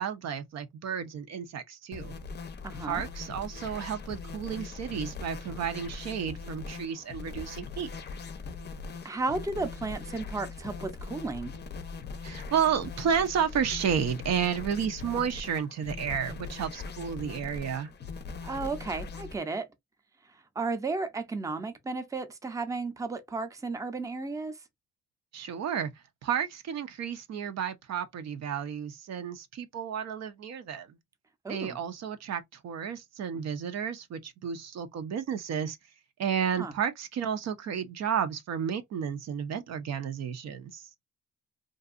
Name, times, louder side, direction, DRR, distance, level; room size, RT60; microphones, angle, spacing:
voice 1, 0.0-2.1 2.8-7.9 12.2-17.9 25.3-25.9 26.2-31.0 31.5-35.8 36.2-40.9, right 7 dB, 60° right, 0.6 m, -32 dB
sound 1, 1.9-19.4, left 4 dB, 35° left, 0.5 m, -41 dB
voice 2, 2.6-3.0 9.0-11.5 18.4-19.7 20.6-24.6 31.4-31.8 36.6-36.7, right 3 dB, 10° right, 0.5 m, -33 dB
2.6 x 2.3 x 2.4 m
cardioid pair, 90°, 30 cm